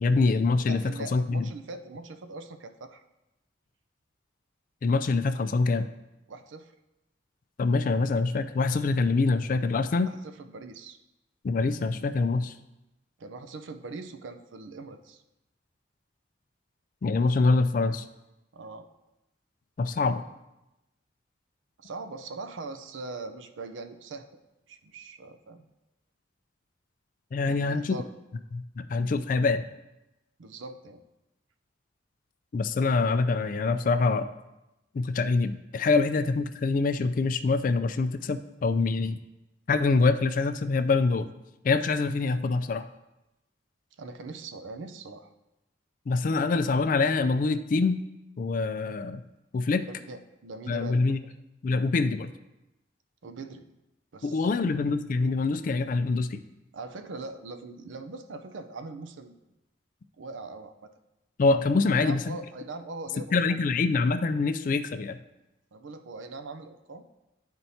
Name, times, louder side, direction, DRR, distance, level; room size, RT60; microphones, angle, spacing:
voice 1, 0.0-0.8 1.1-1.5 4.8-5.9 7.6-10.1 11.4-12.5 17.0-18.0 19.8-20.2 27.3-28.0 28.5-29.6 32.5-34.3 34.9-39.2 39.7-41.3 41.6-42.9 46.1-48.0 48.4-49.2 49.5-49.9 50.7-51.2 51.6-52.3 54.2-56.4 61.4-62.4 63.3-65.2, left 3 dB, 45° left, 10 dB, 0.3 m, -25 dB
voice 2, 0.7-3.0 6.3-6.7 10.0-11.0 13.2-15.2 18.5-18.9 21.8-24.3 24.7-25.7 27.4-28.1 30.4-31.0 44.0-45.3 49.9-51.2 53.2-53.7 54.1-54.7 56.7-59.4 60.2-60.9 61.9-63.6 65.7-67.0, right 3 dB, 85° right, 8 dB, 0.5 m, -41 dB
11.5 x 4.4 x 2.8 m, 0.96 s
head